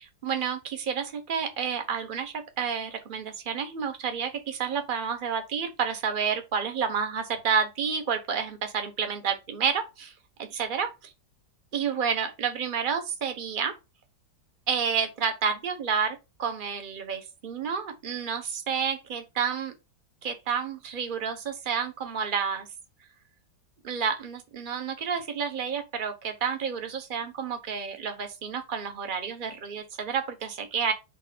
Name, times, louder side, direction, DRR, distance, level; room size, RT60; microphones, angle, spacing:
voice 1, 0.0-10.1 10.4-10.9 11.7-13.8 14.7-19.7 20.2-22.7 23.8-30.9, right 6 dB, 35° right, 1.0 m, -30 dB
5.1 x 3.5 x 5.6 m
omnidirectional pair, 2.0 m